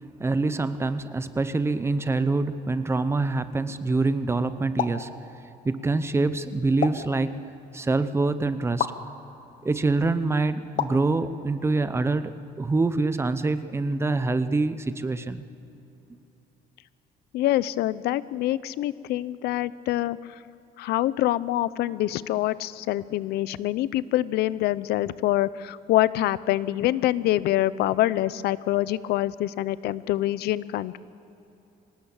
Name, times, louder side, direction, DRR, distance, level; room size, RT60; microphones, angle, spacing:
voice 1, 0.2-5.1 5.6-7.5 7.7-8.9 9.6-12.3 12.6-15.4, right 3 dB, 15° right, 12 dB, 0.8 m, -25 dB
sound 1, 4.8-5.1 6.8-7.1 8.8-9.0 10.8-11.1, left 9 dB, 55° left, 1.2 m, -28 dB
voice 2, 17.3-20.2 20.8-31.0, left 14 dB, 80° left, 17 dB, 0.6 m, -25 dB
25.0 x 19.0 x 7.3 m, 3.0 s
cardioid pair, 145°, 16 cm